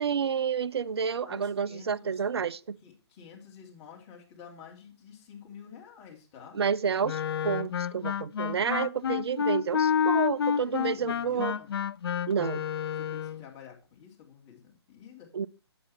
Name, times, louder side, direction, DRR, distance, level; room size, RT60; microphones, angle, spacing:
voice 1, 0.0-2.8 6.5-11.5 12.3-12.6 15.3-15.5, right 6 dB, 70° right, 0.6 m, -30 dB
voice 2, 1.2-2.2 2.8-6.6 10.6-11.7 12.9-15.3, left 7 dB, 25° left, 2.9 m, -50 dB
Wind instrument woodwind instrument, 7.0-13.4, left 8 dB, 60° left, 0.4 m, -29 dB
8.4 x 8.1 x 4.3 m
figure-of-eight pair, 135°, 14 cm